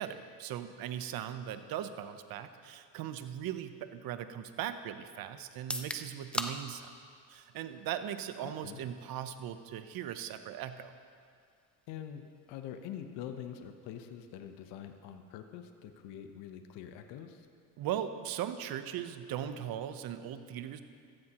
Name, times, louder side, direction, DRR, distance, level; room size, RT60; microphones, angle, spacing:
voice 1, 0.0-6.9 7.3-10.9 17.8-20.8, right 10 dB, 50° right, 10 dB, 0.9 m, -39 dB
sound 1, 5.5-19.4, left 1 dB, ahead, 0.4 m, -48 dB
voice 2, 8.4-8.8 11.9-12.2 12.5-17.5, left 9 dB, 65° left, 7 dB, 1.0 m, -45 dB
15.5 x 14.0 x 3.0 m, 2.2 s
supercardioid pair, 110°, 45 cm